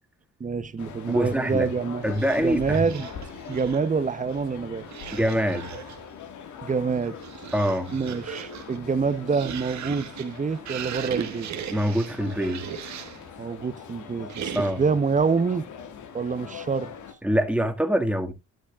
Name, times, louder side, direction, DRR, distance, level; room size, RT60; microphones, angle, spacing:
voice 1, 0.4-2.1 2.4-3.1 3.5-4.9 6.6-7.2 7.9-11.5 13.4-15.7 16.1-16.9, right 5 dB, 25° right, 0.8 m, -26 dB
sound 1, 0.8-17.1, left 7 dB, 75° left, 1.8 m, -42 dB
voice 2, 1.1-1.7 2.0-3.0 5.1-5.7 7.5-7.9 11.7-12.6 14.5-14.8 17.2-18.3, equal, 5° right, 1.9 m, -24 dB
sound 2, 2.0-4.0 4.8-6.1 6.8-13.3 14.3-15.0, right 9 dB, 65° right, 1.6 m, -38 dB
11.5 x 10.5 x 2.4 m
cardioid pair, 90°, 30 cm